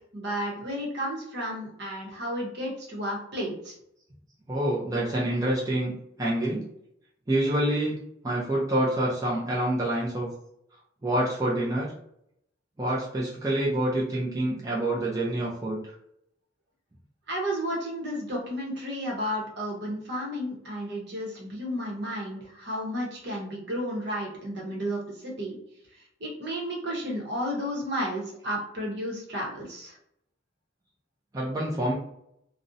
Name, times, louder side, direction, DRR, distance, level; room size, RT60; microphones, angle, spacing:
voice 1, 0.1-3.7 17.3-25.6 26.2-30.0, equal, 60° right, -2 dB, 0.8 m, -32 dB
voice 2, 4.5-5.9 6.2-6.6 7.3-8.0 8.2-10.3 11.0-11.9 12.8-15.9 31.3-31.9, right 1 dB, 20° right, -5 dB, 0.4 m, -27 dB
2.5 x 2.0 x 2.5 m, 0.74 s
head